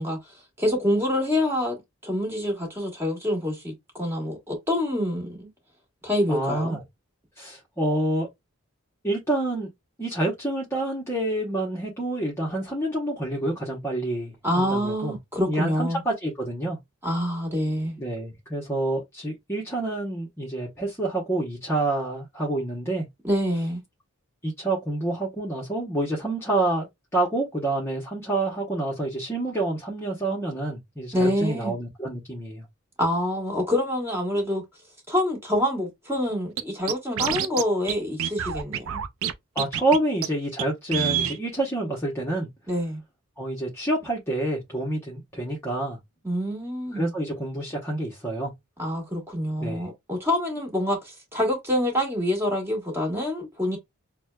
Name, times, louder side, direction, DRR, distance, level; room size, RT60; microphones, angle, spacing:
voice 1, 0.0-5.5 6.0-6.8 14.4-16.0 17.0-18.0 23.2-23.8 31.1-31.7 33.0-34.6 35.1-39.0 42.7-43.0 46.2-47.1 48.8-53.8, left 1 dB, 10° right, 1.5 m, -26 dB
voice 2, 6.3-6.8 7.4-8.3 9.0-9.7 10.0-15.2 15.5-16.8 18.0-23.1 24.4-26.9 27.1-32.6 39.5-42.5 43.4-46.0 46.9-48.5 49.6-49.8, right 2 dB, 10° left, 0.8 m, -28 dB
Scratching (performance technique), 36.6-36.7 36.9-37.6 37.9-38.0 38.2-39.3 39.6-40.0 40.2-40.3 40.6-40.7 40.9-41.4, right 9 dB, 70° right, 0.4 m, -26 dB
6.0 x 2.1 x 2.2 m
head